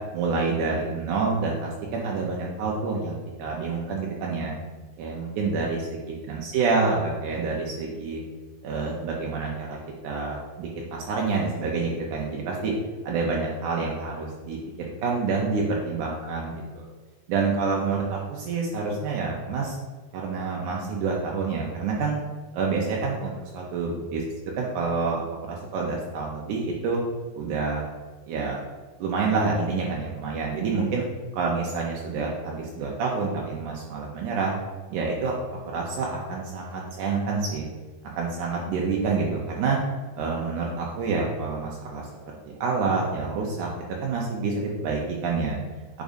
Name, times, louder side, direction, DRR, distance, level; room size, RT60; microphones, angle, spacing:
voice 1, 0.1-4.5 5.0-8.2 8.6-9.8 10.0-12.7 13.0-14.6 15.0-16.9 17.3-19.8 20.1-22.2 22.5-24.2 24.5-25.2 25.5-27.0 27.3-27.8 28.3-28.6 29.0-31.1 31.3-34.5 34.9-35.3 35.7-37.7 38.2-39.8 40.2-45.6, right 4 dB, 75° right, -2 dB, 1.9 m, -28 dB
10.0 x 5.1 x 2.7 m, 1.3 s
omnidirectional pair, 4.5 m